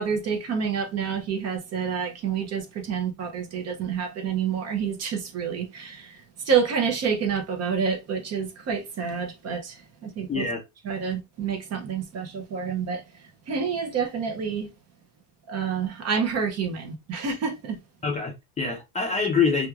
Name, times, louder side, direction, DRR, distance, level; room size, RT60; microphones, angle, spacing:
voice 1, 0.0-10.5 10.8-14.7 15.5-17.8, right 6 dB, 35° right, 0.5 m, -28 dB
voice 2, 10.3-10.6 18.0-19.7, left 5 dB, 15° left, 0.4 m, -25 dB
2.8 x 2.3 x 2.3 m
cardioid pair, 145°, 46 cm